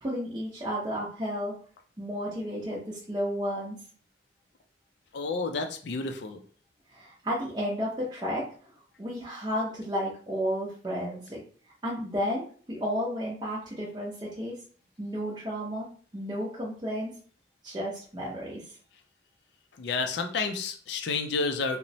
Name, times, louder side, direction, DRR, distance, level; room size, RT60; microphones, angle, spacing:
voice 1, 0.0-1.5 2.0-3.8 6.9-8.4 9.0-11.4 11.8-14.5 15.0-15.9 16.1-17.1 17.6-18.6, equal, 20° right, -6 dB, 0.5 m, -32 dB
voice 2, 5.1-6.4 19.8-21.8, left 4 dB, 60° left, 5 dB, 0.4 m, -30 dB
2.9 x 2.0 x 2.7 m, 0.43 s
head